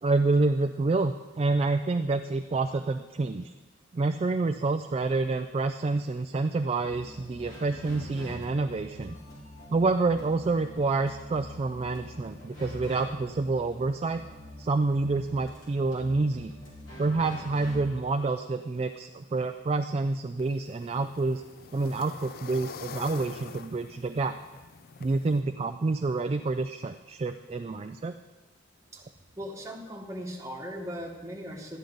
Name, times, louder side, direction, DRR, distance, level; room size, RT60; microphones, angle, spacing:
voice 1, 0.0-3.5 3.9-9.1 9.7-14.2 14.6-16.5 17.0-21.4 21.7-24.4 25.0-28.1, right 3 dB, 30° right, 8 dB, 0.3 m, -28 dB
sound 1, 6.7-18.0, left 1 dB, 80° left, 3.9 m, -45 dB
sound 2, 20.4-25.4, left 6 dB, 50° left, 0.4 m, -45 dB
voice 2, 29.4-31.8, equal, 15° right, -1 dB, 1.5 m, -38 dB
12.0 x 10.0 x 3.9 m, 1.2 s
head